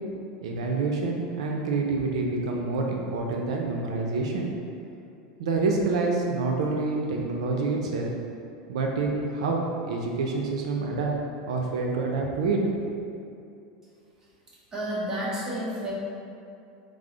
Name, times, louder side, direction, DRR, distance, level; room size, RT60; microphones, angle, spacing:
voice 1, 0.4-4.5 5.4-8.1 8.7-11.1 11.5-12.6, right 3 dB, 85° right, 0 dB, 0.4 m, -27 dB
voice 2, 14.7-15.9, equal, 20° right, -7 dB, 1.0 m, -30 dB
4.7 x 2.0 x 3.8 m, 2.6 s
supercardioid pair, 140°, 3 cm